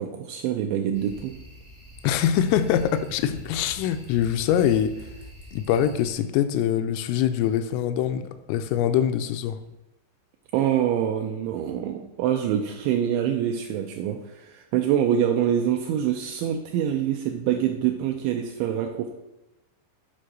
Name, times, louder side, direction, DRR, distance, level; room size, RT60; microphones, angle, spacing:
voice 1, 0.0-1.3 10.5-19.1, right 10 dB, 85° right, 2.6 m, -25 dB
sound 1, 0.9-6.1, equal, 10° right, 0.5 m, -44 dB
voice 2, 2.0-5.0 5.5-9.6, left 10 dB, 85° left, 3.1 m, -24 dB
8.6 x 5.0 x 6.1 m
omnidirectional pair, 5.8 m